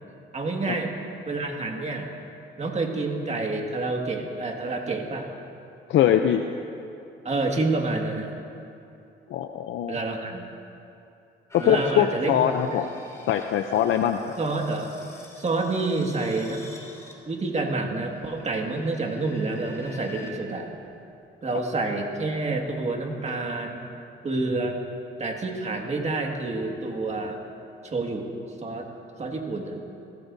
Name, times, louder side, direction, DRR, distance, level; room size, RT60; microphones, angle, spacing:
voice 1, 0.3-0.9 1.3-2.1 2.6-5.3 7.2-8.3 9.9-10.5 11.6-12.8 14.4-14.9 15.4-16.7 17.3-20.8 21.4-23.9 24.2-24.8 25.2-27.4 27.8-28.3 28.6-28.9 29.2-29.8, right 3 dB, 35° right, 1 dB, 2.0 m, -28 dB
voice 2, 5.9-6.4 9.3-10.0 11.7-12.9 13.3-14.2, left 10 dB, 75° left, 6 dB, 0.6 m, -22 dB
sound 1, 11.5-20.3 20.9-21.0, left 2 dB, 15° left, 3.4 m, -46 dB
23.0 x 15.0 x 2.7 m, 2.7 s
cardioid pair, 90°, 20 cm